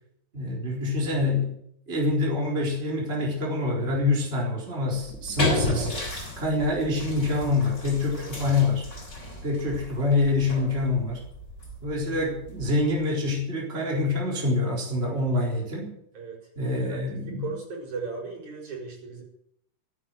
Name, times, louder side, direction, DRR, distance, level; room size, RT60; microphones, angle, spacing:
voice 1, 0.3-1.5 1.9-5.9 6.4-8.9 9.4-11.2 11.8-15.9 16.6-17.5, left 2 dB, 15° right, -1 dB, 4.2 m, -26 dB
sound 1, 4.9-13.0, left 1 dB, 20° left, 5.5 m, -34 dB
voice 2, 16.1-16.8 17.3-19.2, right 4 dB, 60° right, -1 dB, 6.2 m, -37 dB
15.5 x 10.5 x 8.0 m, 0.71 s
omnidirectional pair, 3.8 m